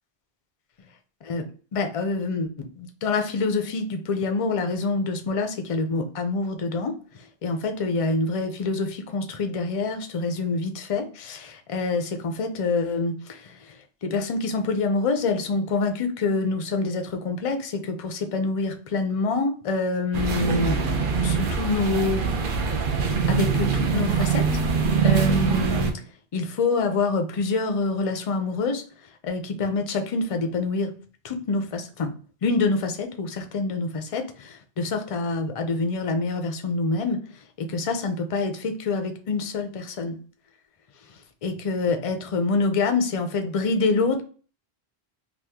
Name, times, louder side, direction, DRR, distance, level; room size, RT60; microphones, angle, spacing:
voice 1, 1.7-20.8 21.2-22.3 23.3-24.5 25.0-25.9 26.3-28.8 29.2-30.9 31.2-32.1 32.4-37.2 37.6-40.2 41.4-44.2, left 3 dB, 45° left, 6 dB, 0.5 m, -26 dB
sound 1, 20.1-25.9, right 6 dB, 60° right, 0.7 m, -23 dB
2.9 x 2.4 x 3.5 m, 0.40 s
omnidirectional pair, 1.1 m